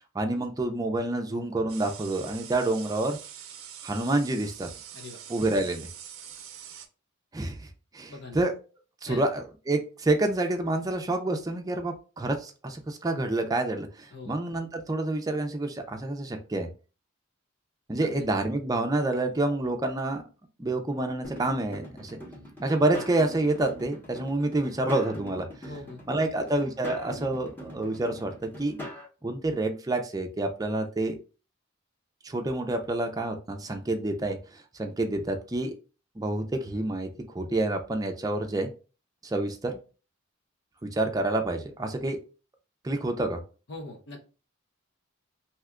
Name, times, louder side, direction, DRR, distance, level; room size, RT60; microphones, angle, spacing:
voice 1, 0.1-3.2 3.8-4.7 5.3-5.9 7.3-8.5 9.0-16.7 17.9-20.3 20.6-22.2 22.6-25.4 26.1-28.8 29.2-31.2 32.2-35.7 36.2-38.7 39.2-39.8 40.8-42.2 42.8-43.4, right 2 dB, 15° right, 4 dB, 0.4 m, -28 dB
sound 1, 1.7-6.9, right 9 dB, 70° right, 0.5 m, -44 dB
voice 2, 8.1-8.4 9.1-9.2 14.1-14.3 18.0-18.3 25.7-26.0 43.7-44.2, left 2 dB, 55° left, 2 dB, 0.6 m, -41 dB
sound 2, 21.2-29.1, left 1 dB, 10° left, 0.8 m, -42 dB
2.8 x 2.2 x 3.5 m, 0.34 s
head